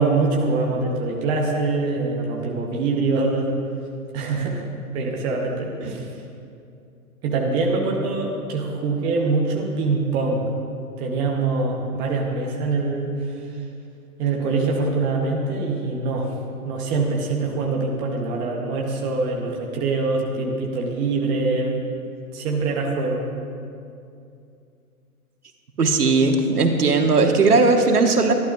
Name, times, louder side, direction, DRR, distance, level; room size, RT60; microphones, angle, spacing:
voice 1, 0.0-3.5 4.1-4.6 4.9-6.0 7.2-10.4 11.0-13.3 14.2-16.3 16.6-21.9 22.3-23.3, right 3 dB, 10° right, -1 dB, 0.5 m, -24 dB
voice 2, 25.8-28.3, right 3 dB, 85° right, 3 dB, 1.6 m, -17 dB
25.5 x 11.5 x 2.4 m, 2.5 s
hypercardioid pair, 135°, 45 cm